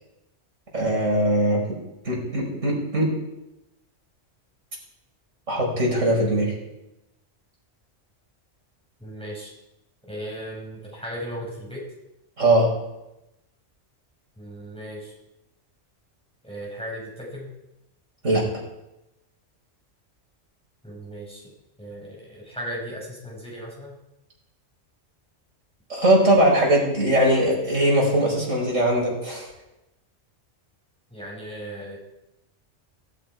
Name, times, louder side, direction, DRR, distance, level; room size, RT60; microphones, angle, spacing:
voice 1, 0.7-1.8 2.0-3.1 5.5-6.5 12.4-12.7 18.2-18.4 25.9-29.5, right 1 dB, 85° right, -1 dB, 5.6 m, -20 dB
voice 2, 9.0-9.5 10.1-11.8 14.4-15.1 16.4-17.5 20.8-21.5 21.8-24.0 31.1-32.0, equal, 5° left, -3 dB, 6.2 m, -36 dB
18.0 x 16.5 x 4.7 m, 0.92 s
omnidirectional pair, 1.3 m